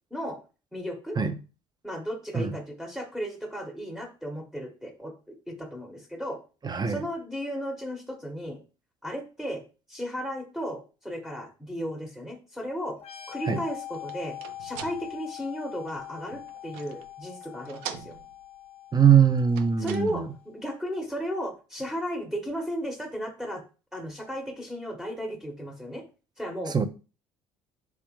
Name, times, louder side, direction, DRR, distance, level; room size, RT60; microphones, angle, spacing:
voice 1, 0.7-1.2 1.8-6.4 6.9-8.6 9.0-9.6 9.9-13.0 13.3-18.2 19.8-23.6 23.9-26.0 26.4-26.7, equal, 5° right, 1.3 m, -35 dB
voice 2, 6.6-7.0 13.5-13.6 18.9-20.3 26.7-26.9, right 7 dB, 30° right, 0.7 m, -21 dB
sound 1, 13.0-20.5, left 13 dB, 45° left, 0.8 m, -43 dB
sound 2, 13.5-17.2 17.4-18.7 19.4-20.4, right 10 dB, 75° right, 0.5 m, -44 dB
4.9 x 3.2 x 3.1 m
hypercardioid pair, 55°, 15 cm